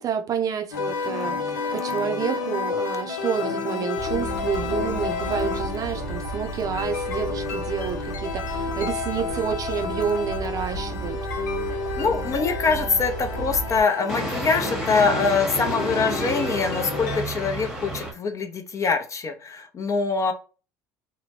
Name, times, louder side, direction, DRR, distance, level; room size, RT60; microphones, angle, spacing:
voice 1, 0.0-11.2, right 7 dB, 40° right, 0.5 m, -29 dB
sound 1, 0.7-17.2, left 5 dB, 85° left, 0.6 m, -31 dB
sound 2, 4.0-13.8, right 3 dB, 90° right, 0.6 m, -34 dB
voice 2, 12.0-20.3, left 5 dB, 35° left, 0.6 m, -24 dB
sound 3, 13.0-13.6 14.1-18.1, right 1 dB, 5° right, 1.0 m, -30 dB
2.8 x 2.2 x 2.9 m
hypercardioid pair, 75°, 9 cm